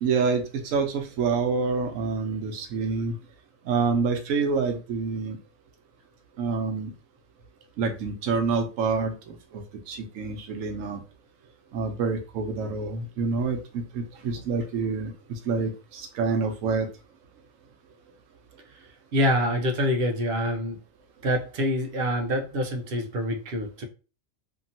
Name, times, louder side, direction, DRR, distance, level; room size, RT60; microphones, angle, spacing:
voice 1, 0.0-3.2 3.7-5.4 6.4-6.9 7.8-11.0 11.7-16.9, right 4 dB, 90° right, 1.0 m, -27 dB
voice 2, 19.1-20.8 21.2-23.8, equal, 55° right, 0.7 m, -26 dB
2.8 x 2.7 x 2.6 m
omnidirectional pair, 1.3 m